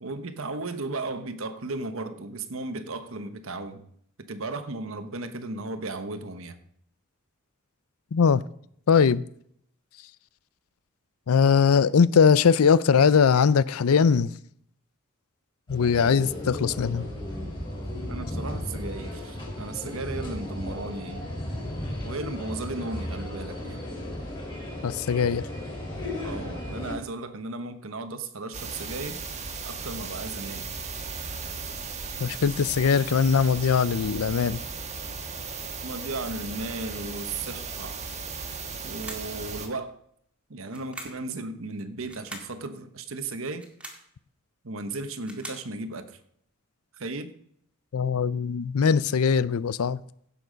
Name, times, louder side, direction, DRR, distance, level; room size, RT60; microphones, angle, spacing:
voice 1, 0.0-3.9 4.2-6.6 18.1-21.3 22.0-23.8 26.2-29.2 29.6-30.7 35.8-38.0 38.8-40.0 40.5-43.6 44.6-46.2 47.0-47.3, right 2 dB, 65° right, 1.1 m, -35 dB
voice 2, 8.1-8.4 8.9-9.2 11.3-14.3 15.7-17.1 24.8-25.4 32.2-34.6 47.9-50.0, left 6 dB, 85° left, 0.5 m, -21 dB
sound 1, 15.7-26.9, left 1 dB, 25° left, 4.7 m, -35 dB
sound 2, 28.5-39.7, right 5 dB, 30° right, 1.4 m, -36 dB
sound 3, 38.9-39.4 40.7-41.3 42.0-42.6 43.5-44.1 45.0-45.7, right 1 dB, 5° right, 1.8 m, -42 dB
16.0 x 6.9 x 5.2 m
head